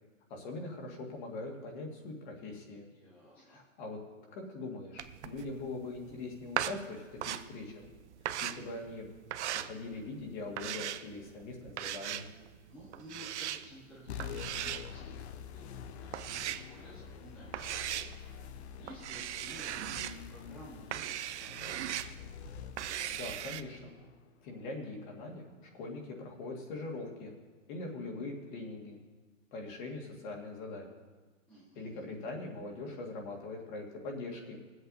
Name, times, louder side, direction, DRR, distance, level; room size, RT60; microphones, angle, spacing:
voice 1, 0.3-2.9 3.5-4.0 4.3-7.9 8.4-9.1 9.5-12.3 23.1-23.9 24.4-25.4 25.8-27.3 27.7-29.0 29.5-30.9 31.8-34.6, left 2 dB, 35° left, 0 dB, 1.9 m, -42 dB
voice 2, 2.9-3.6 12.7-18.0 18.8-21.6 31.5-32.0, equal, 5° left, -7 dB, 0.4 m, -53 dB
sound 1, 5.0-23.6, right 11 dB, 60° right, 0.6 m, -39 dB
sound 2, 14.1-24.9, left 9 dB, 55° left, 0.5 m, -47 dB
21.0 x 8.0 x 2.7 m, 1.3 s
hypercardioid pair, 155°, 39 cm